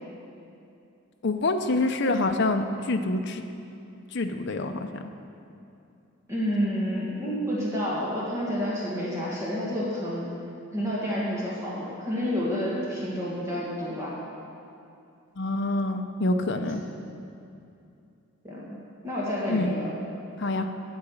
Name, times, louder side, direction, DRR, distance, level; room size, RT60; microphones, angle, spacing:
voice 1, 1.2-3.4 4.1-4.8 15.4-16.8 19.5-19.7 20.4-20.7, left 2 dB, 55° left, 6 dB, 0.6 m, -26 dB
voice 2, 6.3-10.3 10.7-14.1 16.7-16.8 18.4-18.6 19.0-19.9, equal, 15° right, -7 dB, 1.8 m, -29 dB
8.7 x 7.9 x 7.2 m, 2.6 s
head